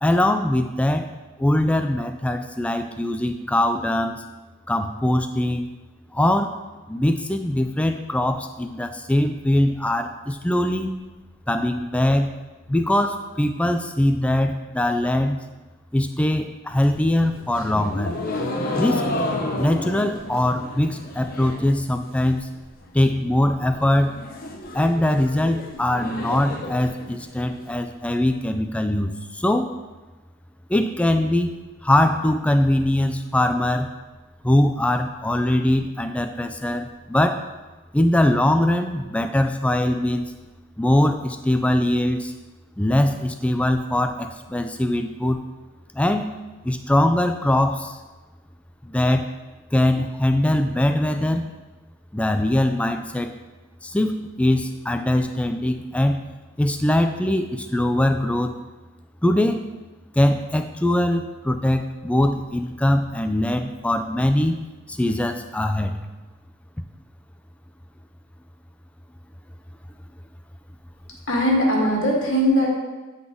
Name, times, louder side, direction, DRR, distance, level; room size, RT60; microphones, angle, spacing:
voice 1, 0.0-1.1 1.4-4.2 4.7-5.7 6.1-6.5 6.9-10.9 11.5-12.4 12.7-15.4 15.9-18.2 18.8-19.0 19.6-22.5 22.9-24.2 24.7-29.7 30.7-33.9 34.4-37.5 37.9-40.3 40.8-42.3 42.8-45.4 45.9-46.3 46.6-48.0 48.8-49.3 49.7-51.5 52.1-53.4 53.8-56.2 56.6-58.5 59.2-59.7 60.2-64.6 64.9-66.0, left 1 dB, 5° left, 7 dB, 0.3 m, -22 dB
sound 1, 16.7-21.7 22.0-22.6 22.9-23.0 23.2-23.3 23.6-27.6, left 1 dB, 45° left, 0.7 m, -31 dB
voice 2, 71.3-72.7, equal, 65° left, -2 dB, 1.7 m, -20 dB
9.2 x 4.0 x 3.6 m, 1.2 s
head